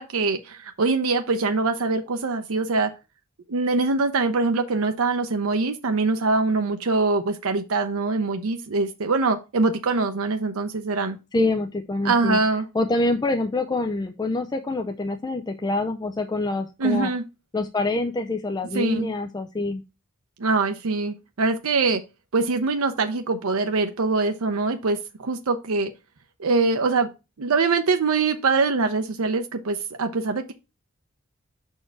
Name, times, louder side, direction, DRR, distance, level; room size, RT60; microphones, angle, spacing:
voice 1, 0.0-2.9 3.5-11.2 12.0-12.7 16.8-17.2 18.7-19.1 20.4-22.0 22.3-25.9 26.4-27.1 27.4-30.5, right 3 dB, 85° right, 0.6 m, -23 dB
voice 2, 11.3-12.4 12.7-17.1 17.5-19.8, left 2 dB, 20° left, 0.4 m, -26 dB
6.0 x 4.4 x 4.5 m
head